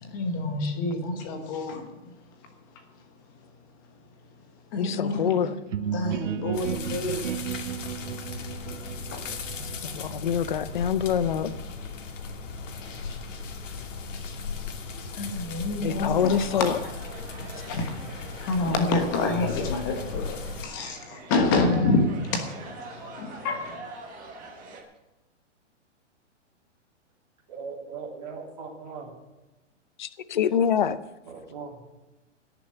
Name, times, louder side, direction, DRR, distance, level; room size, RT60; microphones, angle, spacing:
voice 1, 0.0-2.1 4.7-5.5 5.9-7.3 9.1-9.2 12.8-13.5 14.1-14.6 15.0-16.7 17.4-23.8, left 2 dB, 15° left, 5 dB, 1.2 m, -28 dB
voice 2, 4.7-5.5 9.9-11.5 15.8-16.8 30.0-31.0, left 8 dB, 40° left, 15 dB, 0.6 m, -25 dB
sound 1, 5.7-11.3, right 8 dB, 80° right, 0.9 m, -34 dB
sound 2, 6.5-20.7, left 5 dB, 80° left, 2.4 m, -37 dB
sound 3, 16.1-24.8, right 3 dB, 15° right, 1.2 m, -44 dB
voice 3, 27.5-29.1 31.3-31.8, right 5 dB, 35° right, -3 dB, 2.9 m, -39 dB
17.0 x 7.0 x 9.0 m, 1.0 s
hypercardioid pair, 180°, 37 cm